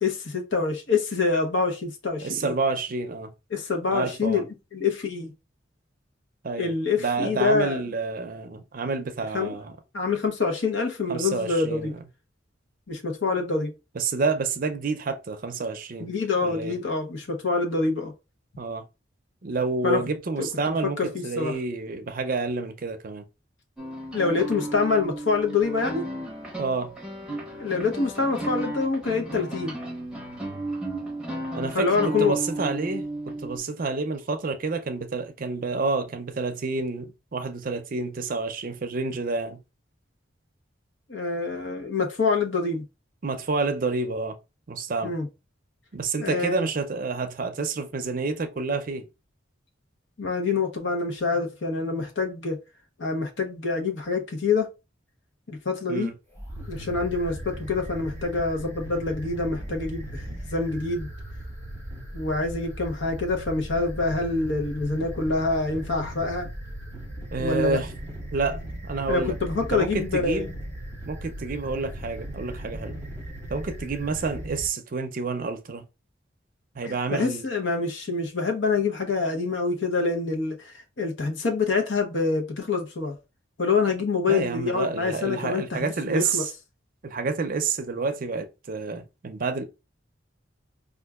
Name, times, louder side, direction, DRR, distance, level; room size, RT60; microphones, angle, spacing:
voice 1, 0.0-2.5 3.5-4.4 4.7-5.3 6.6-7.8 9.3-9.5 9.9-11.9 12.9-13.7 16.0-18.1 19.8-20.0 20.4-21.5 24.1-26.1 27.6-29.7 31.7-32.3 41.1-42.8 45.0-45.3 46.2-46.7 50.2-52.6 53.0-54.7 55.5-56.1 56.7-61.1 62.1-66.5 67.4-67.8 69.1-70.5 76.8-83.2 83.6-86.4, left 4 dB, 75° left, 0.9 m, -26 dB
voice 2, 2.2-3.3 3.9-4.4 6.4-9.7 11.1-12.0 14.0-16.1 16.4-16.8 18.6-18.8 19.4-23.2 26.6-27.0 31.5-39.6 43.2-44.4 44.7-45.1 45.9-49.1 55.9-56.1 67.3-67.9 68.3-68.6 68.8-69.4 69.7-70.5 71.1-73.0 73.5-75.8 76.7-77.4 84.3-86.5 87.0-89.6, right 4 dB, 50° right, 0.5 m, -29 dB
sound 1, 23.8-33.6, right 1 dB, 5° right, 0.7 m, -34 dB
sound 2, 56.3-74.7, right 1 dB, 10° left, 1.3 m, -38 dB
4.4 x 2.4 x 2.3 m
head